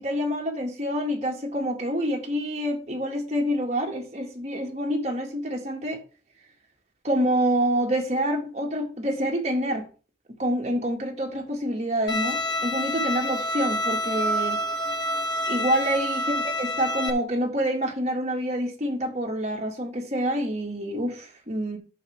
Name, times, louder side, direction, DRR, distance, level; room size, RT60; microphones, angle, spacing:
voice 1, 0.0-6.0 7.0-9.9 10.4-14.6 15.5-16.3 16.6-21.8, right 1 dB, 35° right, 2.1 m, -27 dB
Bowed string instrument, 12.1-17.1, left 1 dB, 25° left, 1.1 m, -27 dB
11.5 x 6.6 x 3.5 m
head